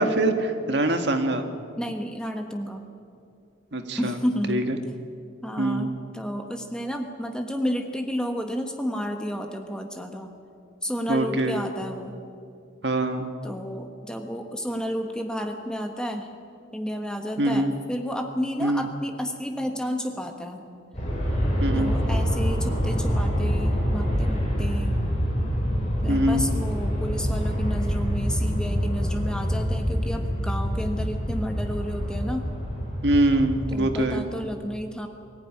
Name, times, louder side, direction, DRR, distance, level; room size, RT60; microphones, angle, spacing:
voice 1, 0.0-1.4 3.7-4.2 4.5-4.8 5.6-5.9 11.1-11.6 12.8-13.3 17.4-17.7 18.6-18.9 21.6-21.9 26.1-26.5 33.0-34.3, right 1 dB, 60° right, 6 dB, 1.8 m, -23 dB
voice 2, 1.8-2.9 4.0-4.7 5.4-10.3 10.8-12.2 13.4-16.3 16.7-20.6 21.7-25.0 26.0-32.5 33.7-35.1, equal, 5° left, 4 dB, 1.4 m, -31 dB
Aircraft, 20.9-33.7, equal, 35° left, 7.4 m, -26 dB
23.0 x 15.0 x 9.9 m, 2.4 s
head